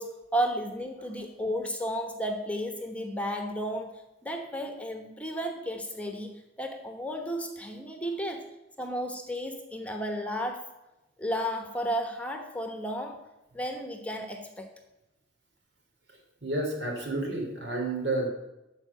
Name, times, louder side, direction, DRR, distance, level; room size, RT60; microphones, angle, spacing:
voice 1, 0.0-3.9 4.2-6.3 6.6-8.4 8.8-10.7 11.2-13.2 13.5-14.7, equal, 10° left, 4 dB, 1.1 m, -33 dB
voice 2, 16.1-18.3, right 2 dB, 70° right, 1 dB, 3.1 m, -31 dB
12.5 x 4.9 x 8.1 m, 0.94 s
head